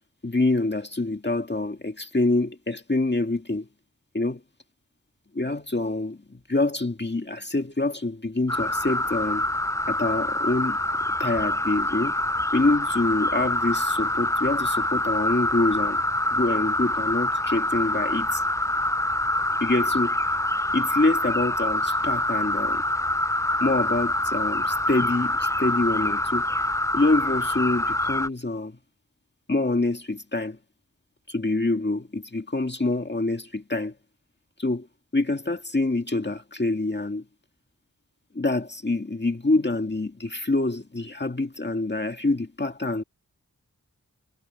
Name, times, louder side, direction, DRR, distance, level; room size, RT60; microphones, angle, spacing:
voice 1, 0.2-3.7 4.1-4.4 5.3-9.5 9.9-10.8 11.2-12.2 12.5-16.0 16.3-18.4 19.6-20.1 20.7-22.8 23.6-26.5 26.9-28.8 29.5-30.6 31.3-33.9 34.6-34.9 35.1-37.3 38.3-43.0, left 2 dB, 30° left, 2.0 m, -26 dB
sound 1, 8.5-28.3, left 1 dB, 10° left, 0.6 m, -25 dB
wide cardioid pair, 65°, 33 cm